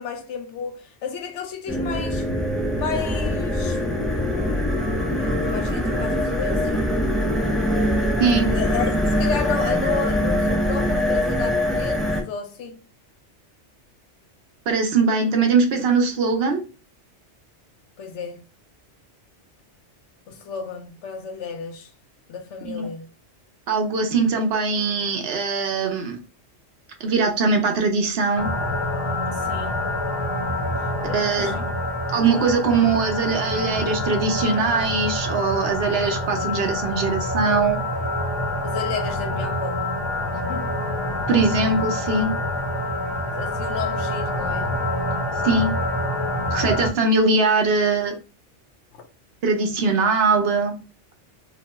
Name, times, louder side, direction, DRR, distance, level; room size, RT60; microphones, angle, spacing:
voice 1, 0.0-2.4 2.8-3.8 5.1-7.1 8.5-12.8 18.0-18.4 20.3-21.9 22.3-23.1 29.3-29.8 31.0-31.7 32.3-32.5 38.6-39.8 40.3-40.7 43.4-44.8 48.9-49.0, left 6 dB, 80° left, 0.9 m, -32 dB
sound 1, 1.7-12.2, left 1 dB, ahead, 0.3 m, -23 dB
voice 2, 14.7-16.6 22.6-22.9 23.7-26.2 27.0-28.5 31.0-31.6 32.1-37.8 41.3-42.3 45.4-45.7 46.5-48.1 49.4-50.8, right 4 dB, 60° right, 0.9 m, -21 dB
sound 2, 28.4-46.9, left 1 dB, 25° left, 0.7 m, -26 dB
2.9 x 2.2 x 2.9 m
omnidirectional pair, 1.2 m